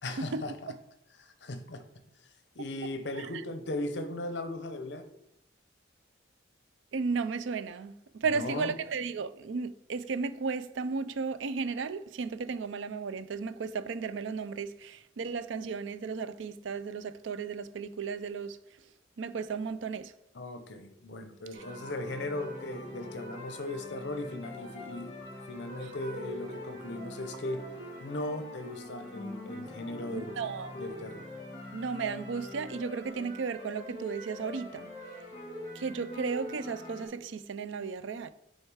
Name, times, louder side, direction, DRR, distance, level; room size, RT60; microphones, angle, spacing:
voice 1, 0.0-0.7 1.2-1.8 2.6-5.1 8.2-8.7 20.3-25.1 25.5-27.6 28.0-30.3 30.8-31.3, left 2 dB, 65° left, 0.7 m, -37 dB
voice 2, 6.9-18.6 19.2-20.1 21.5-21.6 25.8-25.9 30.1-30.7 31.7-34.9 35.7-38.3, right 5 dB, 80° right, 0.4 m, -34 dB
sound 1, 21.5-37.1, left 1 dB, 35° left, 2.4 m, -44 dB
6.5 x 4.4 x 4.7 m
head